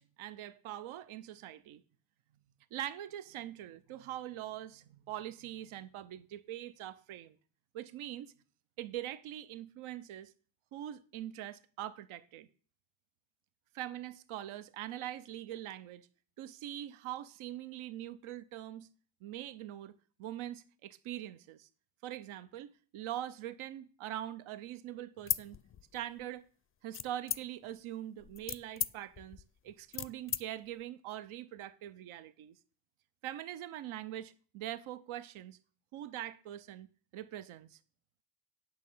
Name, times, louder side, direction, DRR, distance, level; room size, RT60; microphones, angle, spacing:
voice 1, 0.0-1.8 2.7-7.4 7.7-8.3 8.8-10.3 10.7-12.5 13.7-16.1 16.4-18.9 19.2-21.7 22.0-25.6 25.9-26.5 26.8-32.6 33.2-35.6 35.9-36.9 37.1-37.8, right 12 dB, 85° right, 0.8 m, -43 dB
sound 1, 25.2-26.2 26.9-27.7 28.2-30.4, left 9 dB, 30° left, 0.4 m, -37 dB
8.9 x 6.4 x 5.5 m
cardioid pair, 110°, 48 cm